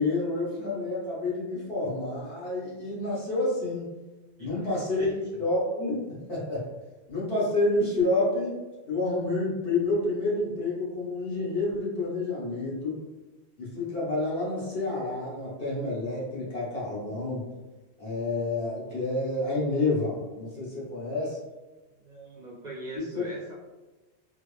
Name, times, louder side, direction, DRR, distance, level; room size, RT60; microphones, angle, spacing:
voice 1, 0.0-3.9 4.4-5.1 5.4-6.7 7.1-8.6 8.9-13.0 13.6-17.5 18.0-21.4, left 2 dB, 60° left, -7 dB, 1.4 m, -29 dB
voice 2, 4.4-4.7 5.0-5.2 22.0-23.5, right 2 dB, 55° right, -4 dB, 0.5 m, -41 dB
3.8 x 2.1 x 3.3 m, 1.2 s
omnidirectional pair, 1.1 m